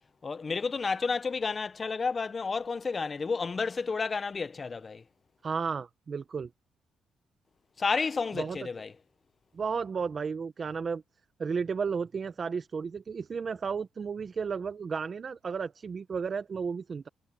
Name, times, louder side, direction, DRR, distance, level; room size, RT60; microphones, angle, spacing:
voice 1, 0.2-5.0 7.8-8.9, left 4 dB, 35° left, 1.0 m, -31 dB
voice 2, 5.4-6.5 8.3-8.6 9.5-11.0 11.4-17.1, right 5 dB, 40° right, 1.0 m, -33 dB
cardioid pair, 90°, 0 cm